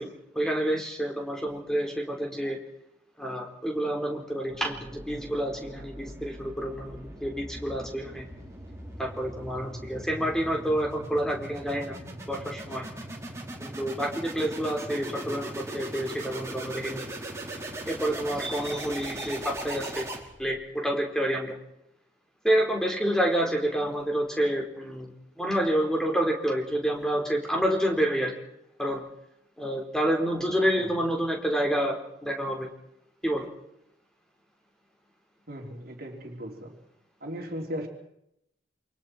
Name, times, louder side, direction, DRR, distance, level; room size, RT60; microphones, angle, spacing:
voice 1, 0.0-2.6 3.2-8.3 9.0-12.0 12.3-12.9 13.6-17.0 17.8-20.1 20.4-21.6 22.4-25.1 25.4-28.3 28.8-29.0 29.6-32.0 32.2-32.7 33.2-33.5, right 1 dB, 5° left, 0 dB, 4.5 m, -28 dB
sound 1, 4.5-20.6, right 1 dB, 15° right, 4.6 m, -40 dB
voice 2, 35.5-36.8 37.2-37.9, equal, 55° right, 0 dB, 3.6 m, -37 dB
28.0 x 24.5 x 4.6 m, 0.78 s
head